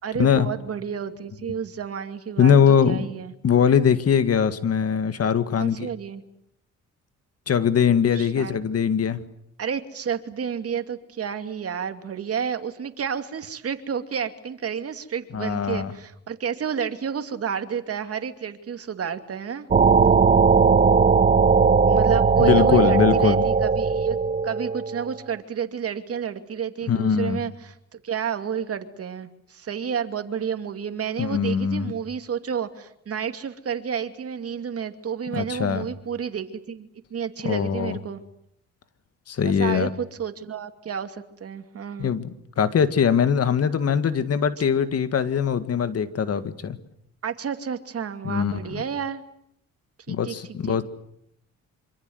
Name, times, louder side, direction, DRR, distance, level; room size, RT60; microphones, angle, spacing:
voice 1, 0.0-2.5 2.8-3.3 5.6-6.2 8.1-8.6 9.6-19.7 21.9-24.2 24.4-38.2 39.4-42.1 47.2-49.2 50.1-50.8, right 7 dB, 50° right, 8 dB, 2.5 m, -30 dB
voice 2, 2.4-3.1 3.4-5.9 7.5-9.2 15.3-15.9 22.4-23.4 26.9-27.4 31.2-31.9 35.3-35.9 37.4-38.0 39.3-39.9 42.0-46.8 48.2-48.8 50.1-50.8, left 7 dB, 55° left, 12 dB, 1.9 m, -21 dB
sound 1, 19.7-25.1, right 5 dB, 25° right, 1.0 m, -18 dB
26.0 x 25.0 x 8.0 m, 0.75 s
cardioid pair, 90°, 30 cm